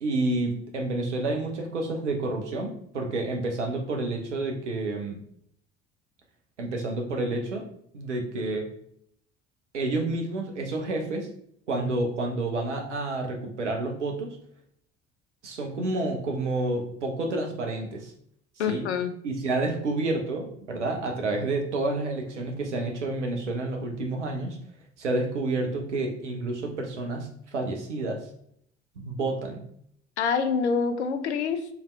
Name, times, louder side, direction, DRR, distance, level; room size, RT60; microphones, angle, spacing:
voice 1, 0.0-5.2 6.6-7.7 7.9-8.7 9.7-11.3 11.7-14.4 15.4-18.1 18.7-18.9 19.2-24.6 25.0-28.3 29.0-29.6, right 2 dB, 80° right, 2 dB, 0.9 m, -29 dB
voice 2, 18.6-19.1 30.2-31.7, left 6 dB, 70° left, 9 dB, 0.6 m, -26 dB
4.7 x 3.4 x 3.2 m, 0.67 s
figure-of-eight pair, 60°, 35 cm